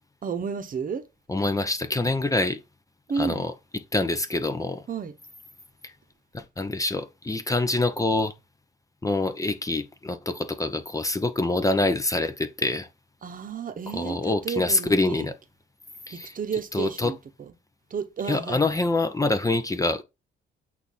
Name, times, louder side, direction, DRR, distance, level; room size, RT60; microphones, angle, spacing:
voice 1, 0.2-1.1 3.1-3.4 4.9-5.1 13.2-15.3 16.1-17.5 17.9-18.7, right 6 dB, 45° right, 1.0 m, -32 dB
voice 2, 1.3-2.6 3.1-3.5 3.9-4.8 5.8-5.9 6.3-8.3 9.0-12.9 13.9-15.3 16.1-16.4 16.7-17.1 18.3-20.0, left 2 dB, 15° left, 0.8 m, -25 dB
8.3 x 2.8 x 5.4 m
cardioid pair, 90°, 20 cm